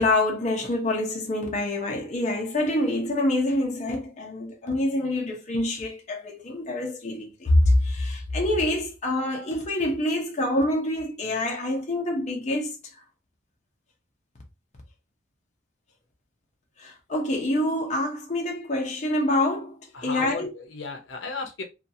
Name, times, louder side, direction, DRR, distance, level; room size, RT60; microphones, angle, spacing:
voice 1, 0.0-12.8 16.8-20.5, left 1 dB, 40° left, 0.7 m, -26 dB
voice 2, 19.9-21.6, left 4 dB, 75° left, 0.6 m, -34 dB
2.6 x 2.3 x 2.7 m
head